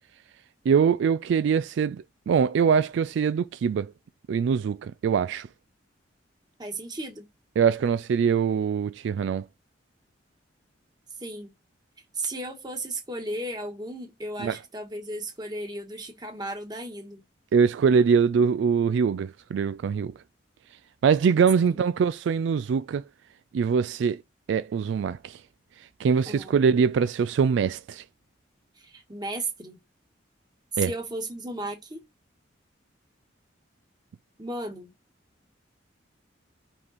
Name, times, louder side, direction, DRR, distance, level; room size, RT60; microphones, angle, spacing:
voice 1, 0.7-3.9 4.3-5.5 7.6-9.5 14.4-14.6 17.5-20.1 21.0-23.0 23.5-24.2 24.5-25.4 26.0-28.0 30.8-30.9, right 6 dB, 70° right, 0.3 m, -23 dB
voice 2, 6.6-7.3 11.2-11.5 12.1-17.2 21.6-21.8 26.3-26.5 28.8-29.8 30.7-32.0 34.4-34.9, right 2 dB, 20° right, 1.5 m, -35 dB
5.5 x 5.3 x 4.1 m
head